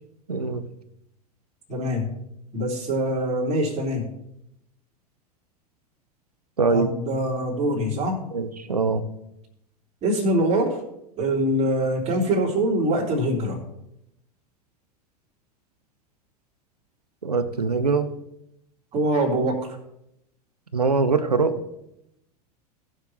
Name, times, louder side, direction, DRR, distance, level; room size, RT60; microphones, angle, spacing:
voice 1, 0.3-0.6 6.6-6.9 8.3-9.0 17.2-18.1 20.7-21.6, right 4 dB, 80° right, 12 dB, 0.9 m, -22 dB
voice 2, 1.7-2.1 2.5-4.0 6.7-8.2 10.0-10.8 11.2-13.6 18.9-19.8, right 1 dB, 35° right, -1 dB, 3.4 m, -24 dB
19.0 x 6.6 x 3.0 m, 0.82 s
figure-of-eight pair, 85°, 20 cm